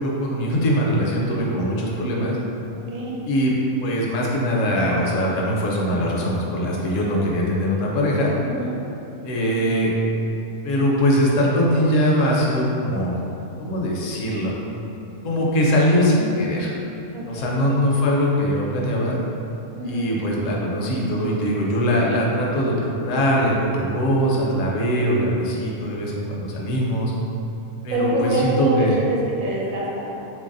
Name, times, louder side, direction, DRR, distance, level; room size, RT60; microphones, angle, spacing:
voice 1, 0.0-2.4 3.3-3.5 3.8-8.4 9.2-9.9 10.6-13.2 13.6-14.5 15.2-16.7 17.3-19.2 19.8-27.1 27.8-28.9, equal, 70° left, -3 dB, 0.9 m, -21 dB
voice 2, 8.4-8.7 17.1-17.7 19.8-20.1 27.9-30.1, right 1 dB, 90° right, -4 dB, 1.1 m, -25 dB
3.0 x 2.6 x 3.7 m, 2.8 s
omnidirectional pair, 1.4 m